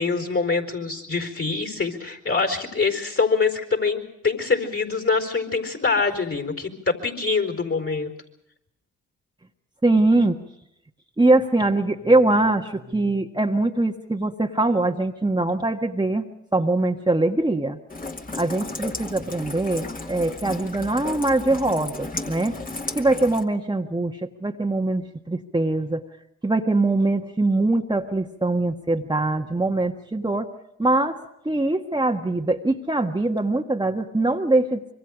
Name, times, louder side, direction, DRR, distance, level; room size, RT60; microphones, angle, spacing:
voice 1, 0.0-8.1, left 4 dB, 40° left, 6 dB, 4.5 m, -24 dB
voice 2, 9.8-10.4 11.2-16.2 16.5-17.8 18.4-22.6 22.9-26.0 26.4-30.5 30.8-31.2 31.4-34.9, right 2 dB, 10° right, 2 dB, 1.6 m, -22 dB
Rain, 17.9-23.4, left 2 dB, 25° left, 2.3 m, -34 dB
26.0 x 24.0 x 5.1 m, 0.78 s
hypercardioid pair, 50°, 35 cm